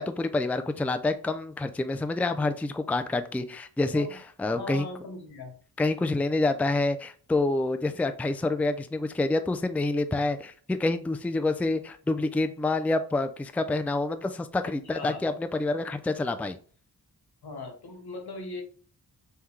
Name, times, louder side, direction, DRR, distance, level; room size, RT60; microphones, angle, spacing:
voice 1, 0.0-4.9 5.8-16.6, left 2 dB, 5° left, 0.4 m, -27 dB
voice 2, 4.5-5.6 14.7-15.2 17.4-18.6, left 3 dB, 80° left, 1.2 m, -39 dB
5.5 x 2.3 x 3.1 m
wide cardioid pair, 75°, 37 cm